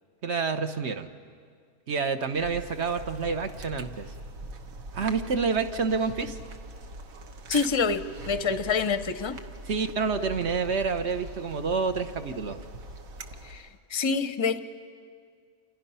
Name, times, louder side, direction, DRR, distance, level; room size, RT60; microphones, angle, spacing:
voice 1, 0.2-1.1 1.9-4.1 4.9-6.4 8.5-8.6 9.7-12.6, right 5 dB, 55° right, 8 dB, 1.3 m, -28 dB
sound 1, 2.3-13.8, right 2 dB, 75° right, 1.6 m, -42 dB
voice 2, 7.5-9.4 13.4-14.6, left 5 dB, 25° left, 11 dB, 0.7 m, -27 dB
29.0 x 28.0 x 5.7 m, 2.1 s
omnidirectional pair, 1.5 m